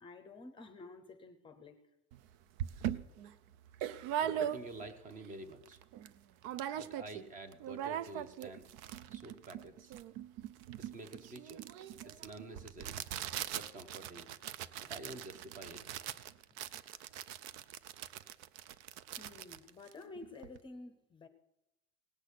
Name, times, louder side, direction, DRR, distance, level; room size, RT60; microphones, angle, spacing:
voice 1, 0.0-1.8 19.2-21.3, left 3 dB, 15° left, 9 dB, 0.7 m, -51 dB
sound 1, 2.1-2.2 2.6-5.0 5.4-5.5 5.7-6.1 6.4-7.3 7.5-20.6, right 10 dB, 65° right, 0.7 m, -41 dB
voice 2, 3.8-5.8 6.7-8.7 9.1-9.9 10.8-11.6 12.0-13.0 13.5-14.3 14.8-15.9, right 2 dB, 25° right, 10 dB, 1.0 m, -49 dB
18.0 x 6.2 x 8.3 m, 0.89 s
cardioid pair, 165°, 31 cm